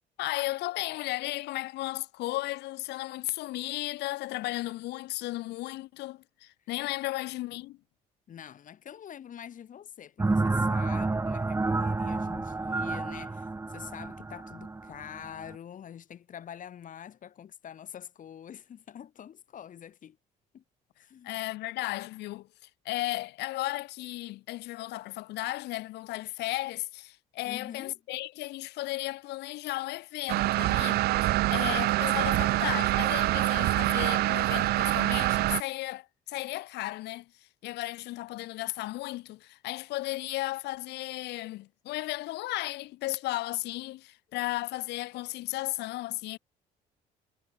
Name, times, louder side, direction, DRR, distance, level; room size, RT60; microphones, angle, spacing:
voice 1, 0.2-7.8 21.2-46.4, left 18 dB, 85° left, 6.3 m, -35 dB
voice 2, 8.3-20.2 20.5-20.6 21.0-21.4 27.4-27.9, left 9 dB, 50° left, 6.0 m, -45 dB
sound 1, 10.2-15.6, right 3 dB, 15° right, 2.0 m, -30 dB
sound 2, 30.3-35.6, right 17 dB, 70° right, 0.5 m, -25 dB
cardioid pair, 110°, 17 cm